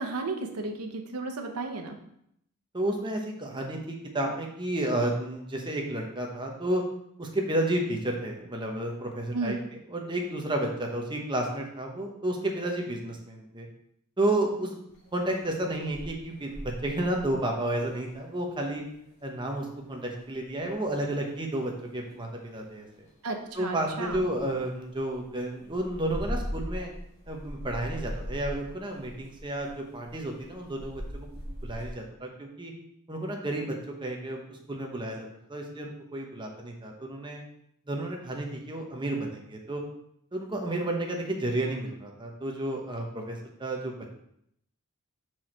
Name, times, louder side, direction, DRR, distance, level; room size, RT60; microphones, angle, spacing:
voice 1, 0.0-2.0 9.3-9.6 23.2-24.2, right 3 dB, 90° right, 4 dB, 0.9 m, -33 dB
voice 2, 2.7-6.8 7.2-9.6 9.9-13.7 14.2-14.8 15.1-18.8 19.2-22.9 23.5-26.9 27.3-32.7 33.1-37.4 37.9-39.8 40.3-44.1, right 1 dB, 20° right, 1 dB, 1.0 m, -31 dB
sound 1, 14.9-32.0, equal, 45° left, 2.4 m, -42 dB
6.2 x 4.7 x 4.4 m, 0.73 s
head